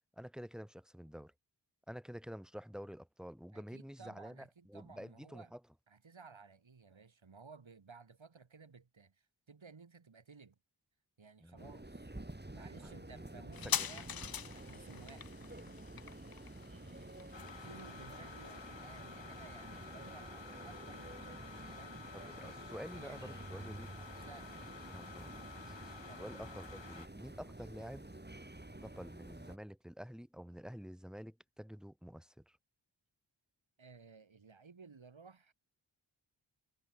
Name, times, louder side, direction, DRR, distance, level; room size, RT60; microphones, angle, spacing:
voice 1, 0.2-1.3 1.9-5.6 11.4-11.6 12.8-14.0 22.1-23.9 24.9-25.3 25.6-28.1 28.8-32.6, equal, ahead, 4.8 m, -49 dB
voice 2, 3.5-5.5 5.9-10.6 11.2-12.1 12.5-15.4 16.7-24.8 26.1-26.2 33.8-35.5, right 5 dB, 90° right, 5.2 m, -57 dB
sound 1, 11.6-29.6, right 1 dB, 20° right, 6.4 m, -50 dB
sound 2, 13.5-20.6 20.9-21.0, left 8 dB, 55° left, 0.6 m, -43 dB
sound 3, 17.3-27.1, left 5 dB, 70° left, 2.7 m, -52 dB
wide cardioid pair, 70°, 45 cm